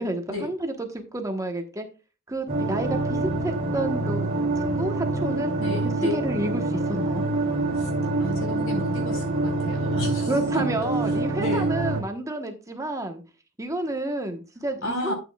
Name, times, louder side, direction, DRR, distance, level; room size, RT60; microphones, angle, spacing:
voice 1, 0.0-1.9 2.3-4.2 4.6-5.6 6.1-7.2 10.3-13.2 13.6-15.1, right 1 dB, 15° right, 5 dB, 1.1 m, -30 dB
sound 1, 2.5-12.0, right 2 dB, 45° right, 2.9 m, -26 dB
voice 2, 5.6-6.2 7.8-7.9 8.2-10.7 11.4-11.7 14.8-15.1, left 1 dB, 65° left, 4 dB, 4.2 m, -32 dB
12.5 x 8.5 x 2.3 m, 0.32 s
head